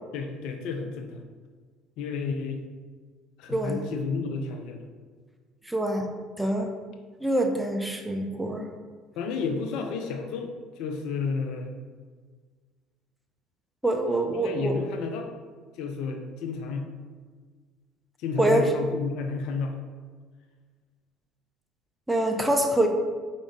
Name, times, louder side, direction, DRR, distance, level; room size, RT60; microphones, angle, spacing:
voice 1, 0.1-1.2 2.0-2.6 3.4-4.9 9.2-11.8 14.3-15.3 15.8-16.9 18.2-19.8, left 4 dB, 55° left, 4 dB, 0.4 m, -31 dB
voice 2, 3.5-3.8 5.7-6.7 7.2-8.7 13.8-14.8 18.4-18.7 22.1-22.9, right 1 dB, 5° right, 3 dB, 0.5 m, -25 dB
4.7 x 2.5 x 3.5 m, 1.5 s
figure-of-eight pair, 60°, 0 cm